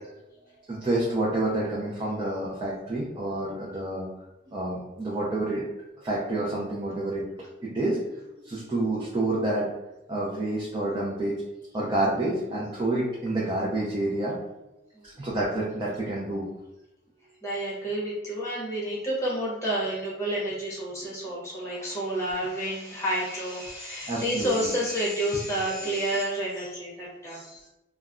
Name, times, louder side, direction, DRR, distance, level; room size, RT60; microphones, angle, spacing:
voice 1, 0.7-4.1 4.5-5.7 6.0-7.2 7.6-8.0 8.4-9.7 10.1-11.4 11.7-14.4 15.2-16.5 24.1-24.7, right 2 dB, 20° right, -6 dB, 0.4 m, -28 dB
voice 2, 17.4-27.7, right 1 dB, 15° left, -6 dB, 0.8 m, -30 dB
2.3 x 2.0 x 3.5 m, 0.93 s
head